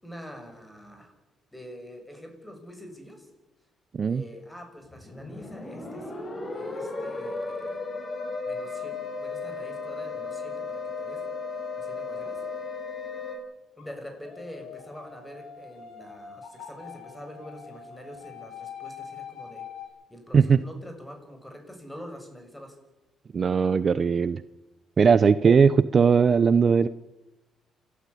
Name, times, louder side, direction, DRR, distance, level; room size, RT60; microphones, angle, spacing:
voice 1, 0.0-1.1 1.5-3.3 4.0-6.1 6.5-7.8 8.5-11.2 11.8-12.4 13.8-19.6 20.1-22.8, equal, 5° left, 5 dB, 7.3 m, -45 dB
sound 1, 4.9-13.4, left 4 dB, 35° left, 7.9 m, -35 dB
sound 2, 13.8-19.9, left 7 dB, 75° left, 6.8 m, -44 dB
voice 2, 23.3-24.4 25.0-26.9, right 6 dB, 45° right, 15 dB, 0.8 m, -19 dB
29.0 x 13.5 x 10.0 m, 1.0 s
cardioid pair, 90°, 0 cm